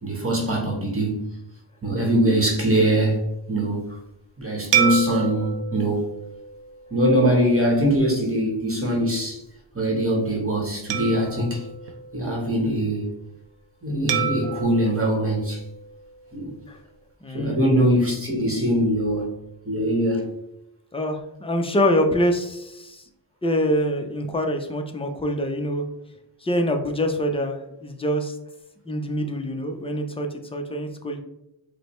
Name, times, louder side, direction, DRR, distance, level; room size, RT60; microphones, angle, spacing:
voice 1, 0.0-1.3 1.8-3.2 3.5-3.8 4.4-6.1 6.9-9.4 9.7-11.7 12.1-13.1 13.8-15.6 16.3-16.5 17.3-19.3 19.7-20.3, right 1 dB, 30° right, -1 dB, 1.0 m, -22 dB
sound 1, 4.7-7.4 8.0-8.2 10.9-12.7 14.1-16.4, right 7 dB, 65° right, 0.6 m, -29 dB
voice 2, 17.2-17.6 20.9-23.0 23.4-25.8 26.4-28.4 28.9-31.2, equal, 15° left, 4 dB, 0.4 m, -25 dB
5.0 x 2.1 x 3.0 m, 0.86 s
wide cardioid pair, 95°, 47 cm